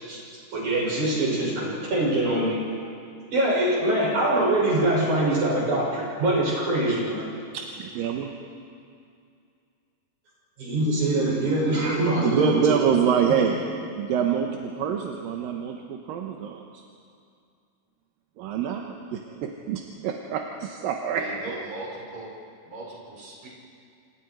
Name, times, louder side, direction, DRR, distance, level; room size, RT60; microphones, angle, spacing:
voice 1, 0.5-2.6 3.3-7.3 10.6-12.6 12.8-12.9, right 1 dB, 50° right, -5 dB, 8.1 m, -23 dB
voice 2, 7.5-8.3 12.2-13.6 14.0-16.7 18.4-21.2, right 8 dB, 75° right, 2 dB, 2.7 m, -26 dB
voice 3, 21.1-22.3 22.7-23.5, right 2 dB, 30° right, -5 dB, 6.7 m, -38 dB
27.5 x 27.5 x 4.7 m, 2.4 s
omnidirectional pair, 4.4 m